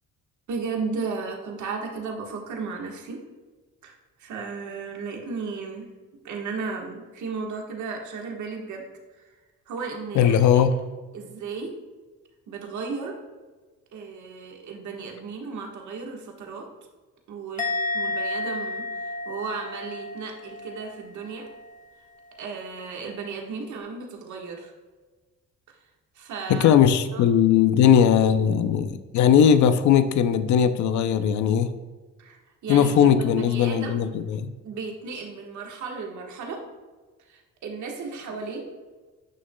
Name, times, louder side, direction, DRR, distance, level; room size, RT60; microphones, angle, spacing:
voice 1, 0.5-3.2 3.8-5.9 6.2-8.8 9.2-9.3 9.7-10.6 11.1-11.7 12.5-13.2 13.9-16.6 17.3-17.6 17.9-21.5 22.4-24.7 26.1-26.7 27.1-27.2 32.2-33.9 34.6-36.6 37.3-38.7, right 4 dB, 75° right, 1 dB, 1.4 m, -34 dB
voice 2, 10.1-10.7 26.5-31.7 32.7-34.5, left 8 dB, 70° left, 11 dB, 0.6 m, -19 dB
Musical instrument, 17.6-21.0 21.2-21.7, left 2 dB, 25° left, 1.4 m, -31 dB
9.7 x 6.2 x 2.2 m, 1.3 s
cardioid pair, 90°, 30 cm